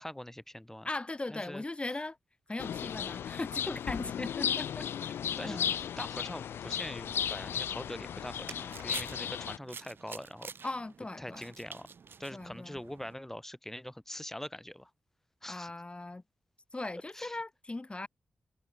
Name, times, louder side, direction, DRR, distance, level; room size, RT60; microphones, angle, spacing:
voice 1, 0.0-0.9 1.3-1.6 5.4-10.5 11.2-11.9 12.2-14.9 15.4-15.7 17.1-17.4, left 1 dB, 10° left, 2.2 m, -43 dB
voice 2, 0.8-2.2 2.5-4.9 5.4-5.7 10.6-11.5 12.3-12.8 15.5-16.2 16.7-18.1, left 2 dB, 30° left, 2.0 m, -39 dB
sound 1, 2.6-9.6, left 9 dB, 85° left, 1.2 m, -35 dB
sound 2, 8.0-13.1, right 6 dB, 65° right, 1.8 m, -48 dB
supercardioid pair, 45°, 4 cm